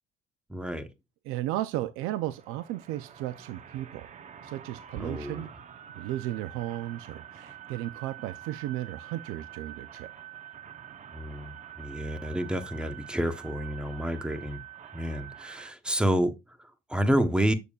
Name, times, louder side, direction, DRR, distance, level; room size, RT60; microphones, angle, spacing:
voice 1, 0.5-0.9 5.0-5.4 11.1-14.6 14.9-17.5, equal, 5° right, 0.9 m, -29 dB
voice 2, 1.2-4.1 4.4-5.5 5.9-10.1, right 14 dB, 85° right, 0.5 m, -34 dB
sound 1, 2.1-15.7, right 11 dB, 35° right, 0.7 m, -46 dB
7.0 x 6.7 x 2.3 m
cardioid pair, 130°, 21 cm